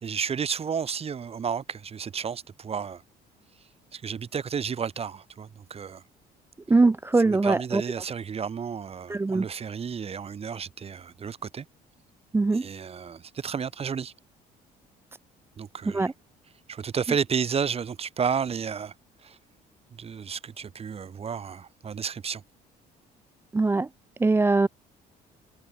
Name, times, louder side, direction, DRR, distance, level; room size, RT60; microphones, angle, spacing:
voice 1, 0.0-3.0 3.9-6.0 7.2-11.7 12.5-14.1 15.6-16.1 16.7-18.9 19.2-19.4 20.0-22.4, right 6 dB, 35° right, 2.4 m, -32 dB
voice 2, 6.7-7.8 9.1-9.4 12.3-12.6 15.9-16.1 23.5-23.9 24.2-24.7, right 3 dB, 15° right, 0.6 m, -21 dB
cardioid pair, 110°, 17 cm